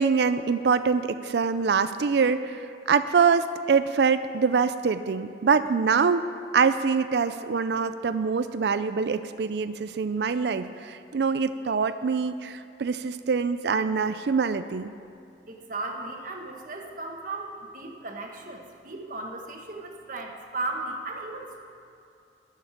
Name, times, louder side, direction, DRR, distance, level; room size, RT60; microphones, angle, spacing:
voice 1, 0.0-6.3 6.5-14.9, right 5 dB, 65° right, 12 dB, 0.4 m, -24 dB
voice 2, 15.5-21.6, right 2 dB, 50° right, 2 dB, 1.4 m, -36 dB
12.5 x 6.6 x 9.8 m, 2.6 s
head